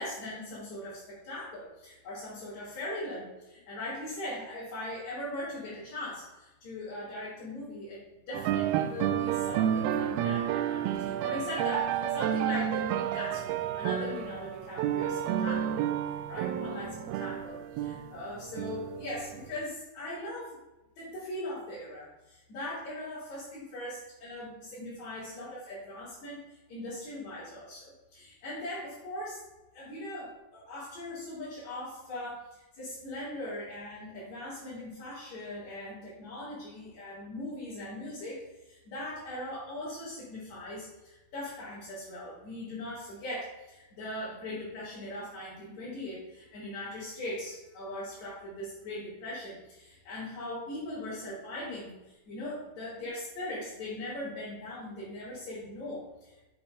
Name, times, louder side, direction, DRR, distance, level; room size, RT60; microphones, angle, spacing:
voice 1, 0.0-8.0 8.3-15.9 16.3-20.6 21.0-29.4 29.7-56.5, left 1 dB, 45° left, -9 dB, 4.1 m, -40 dB
sound 1, 8.3-19.6, right 10 dB, 80° right, 2.3 m, -31 dB
8.5 x 5.9 x 5.5 m, 1.0 s
omnidirectional pair, 4.6 m